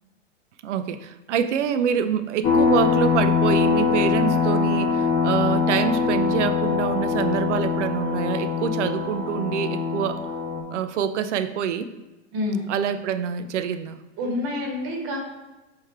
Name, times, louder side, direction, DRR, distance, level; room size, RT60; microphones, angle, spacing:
voice 1, 0.6-10.2 10.7-11.9 12.7-14.0, right 8 dB, 70° right, 11 dB, 0.5 m, -26 dB
sound 1, 2.4-10.6, left 5 dB, 25° left, 0.4 m, -23 dB
voice 2, 12.3-12.7 14.2-15.2, left 2 dB, 40° right, 1 dB, 1.1 m, -27 dB
3.5 x 3.2 x 4.4 m, 1.1 s
hypercardioid pair, 100°, 37 cm